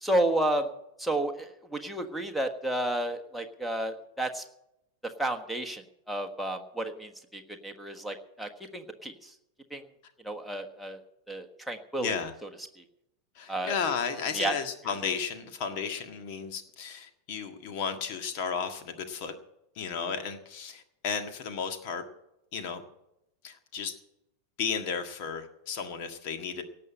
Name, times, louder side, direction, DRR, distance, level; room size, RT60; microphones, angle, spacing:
voice 1, 0.0-0.7 1.0-4.4 5.2-5.8 6.1-9.3 9.7-9.8 10.2-11.0 11.3-12.1 13.5-13.7 14.3-14.6, right 1 dB, ahead, 8 dB, 1.4 m, -31 dB
voice 2, 12.0-12.3 13.3-19.4 19.7-22.0 22.5-22.8 23.4-23.9 24.6-26.6, left 6 dB, 45° left, 7 dB, 1.7 m, -33 dB
18.0 x 6.8 x 8.6 m, 0.84 s
figure-of-eight pair, 90°, 0 cm